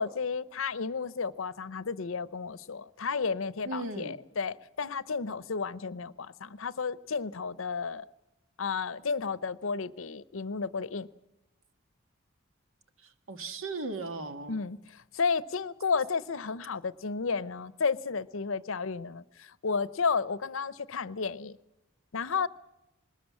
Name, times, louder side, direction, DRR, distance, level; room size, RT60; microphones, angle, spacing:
voice 1, 0.0-8.1 8.6-11.1 14.5-21.6 22.1-22.5, left 5 dB, 70° left, 18 dB, 0.7 m, -32 dB
voice 2, 3.6-4.1 13.3-14.6, right 2 dB, 75° right, 8 dB, 1.8 m, -36 dB
21.5 x 19.5 x 7.4 m, 0.96 s
head